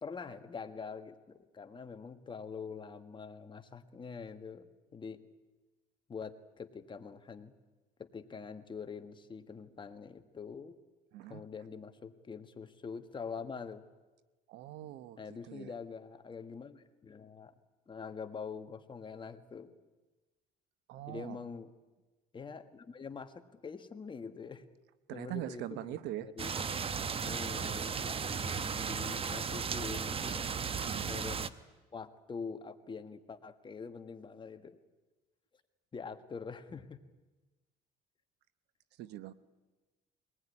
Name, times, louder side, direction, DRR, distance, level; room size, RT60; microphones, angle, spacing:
voice 1, 0.0-5.2 6.1-7.5 8.0-10.8 11.3-13.8 15.2-17.5 17.9-19.7 21.1-21.7 22.3-24.7 25.1-26.5 27.0-30.5 31.1-31.5 31.9-34.8 35.9-37.0, left 5 dB, 30° left, 8 dB, 1.6 m, -45 dB
voice 2, 11.1-11.4 14.5-15.2 15.4-15.7 20.9-21.4 25.1-26.3 30.8-31.1 39.0-39.3, right 14 dB, 90° right, 15 dB, 1.0 m, -42 dB
sound 1, 26.4-31.5, right 6 dB, 35° right, 1.0 m, -35 dB
23.5 x 19.5 x 9.8 m, 1.2 s
cardioid pair, 110°, 17 cm